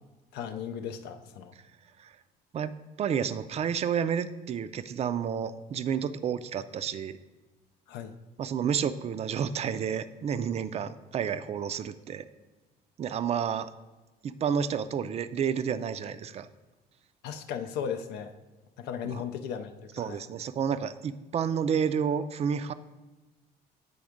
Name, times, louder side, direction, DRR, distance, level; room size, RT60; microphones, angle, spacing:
voice 1, 0.3-1.5 7.9-8.1 17.2-18.3 18.8-20.2, left 8 dB, 90° left, 6 dB, 0.5 m, -36 dB
voice 2, 3.0-7.2 8.4-12.2 13.0-13.7 14.2-16.5 19.1-19.2 20.0-22.7, right 7 dB, 40° right, 13 dB, 0.4 m, -30 dB
8.4 x 3.5 x 5.0 m, 1.2 s
cardioid pair, 110°, 17 cm